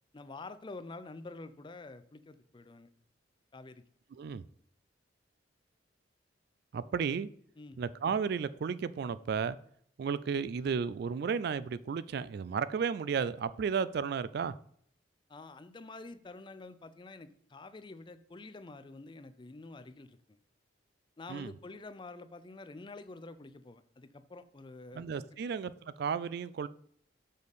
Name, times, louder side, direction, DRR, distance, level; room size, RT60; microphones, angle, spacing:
voice 1, 0.1-2.9 3.5-3.8 7.6-7.8 15.3-20.4 21.2-25.0, left 3 dB, 25° left, 0.4 m, -48 dB
voice 2, 4.1-4.4 6.7-7.3 7.8-9.6 10.0-14.5 21.3-21.5 24.9-26.7, right 6 dB, 55° right, 0.3 m, -33 dB
6.5 x 5.3 x 4.0 m
head